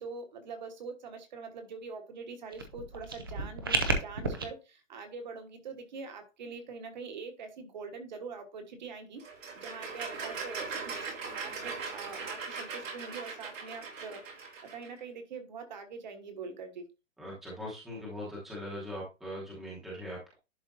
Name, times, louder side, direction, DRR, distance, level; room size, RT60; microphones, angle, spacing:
voice 1, 0.0-9.2 9.5-16.9, right 4 dB, 35° right, 6 dB, 1.4 m, -44 dB
sound 1, 2.5-4.4, right 3 dB, 20° right, 0.5 m, -32 dB
sound 2, 9.2-14.9, right 4 dB, 85° right, 3.3 m, -40 dB
voice 2, 17.2-20.4, left 1 dB, ahead, -6 dB, 1.0 m, -41 dB
11.0 x 4.4 x 2.6 m, 0.27 s
hypercardioid pair, 175°, 38 cm